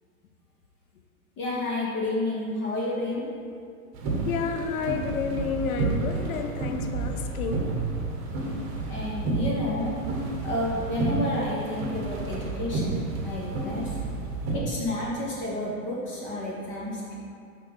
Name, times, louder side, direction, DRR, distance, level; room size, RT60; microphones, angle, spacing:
voice 1, 1.4-3.2 8.9-9.9 10.4-13.9 14.5-17.1, left 1 dB, 25° left, -4 dB, 1.0 m, -30 dB
sound 1, 3.9-14.6, right 3 dB, 30° right, 1.0 m, -30 dB
voice 2, 4.3-7.7, left 5 dB, 70° left, 6 dB, 0.6 m, -30 dB
5.7 x 5.2 x 3.3 m, 2.3 s
figure-of-eight pair, 105°, 45 cm